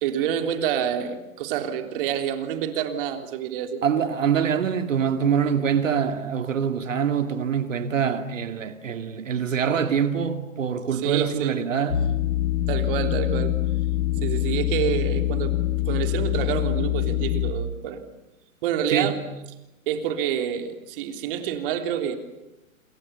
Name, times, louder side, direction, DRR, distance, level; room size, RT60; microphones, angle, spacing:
voice 1, 0.0-3.8 10.9-11.6 12.7-13.5 14.2-15.6 15.9-18.0 18.6-19.2 19.9-22.1, right 9 dB, 40° right, 3.5 m, -27 dB
voice 2, 3.8-12.1 14.2-14.3 18.9-19.3, right 7 dB, 65° right, 2.3 m, -24 dB
sound 1, 11.9-17.5, left 14 dB, 65° left, 2.1 m, -24 dB
28.5 x 28.0 x 6.9 m
figure-of-eight pair, 125°, 41 cm